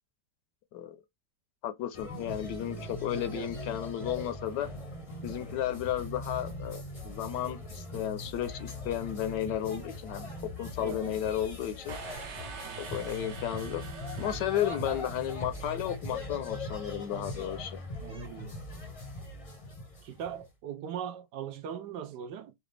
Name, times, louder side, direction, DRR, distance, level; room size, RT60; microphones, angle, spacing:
voice 1, 1.6-4.7 5.2-10.3 10.6-12.0 12.8-13.8 14.2-17.8, left 11 dB, 75° left, 1.2 m, -33 dB
sound 1, 1.9-20.5, left 2 dB, 30° left, 0.6 m, -41 dB
voice 2, 3.1-3.5 10.8-11.2 12.6-12.8 18.0-18.6 20.0-22.5, right 8 dB, 75° right, 1.2 m, -40 dB
sound 2, 11.9-15.6, right 6 dB, 60° right, 0.7 m, -45 dB
4.9 x 2.4 x 3.2 m
omnidirectional pair, 1.9 m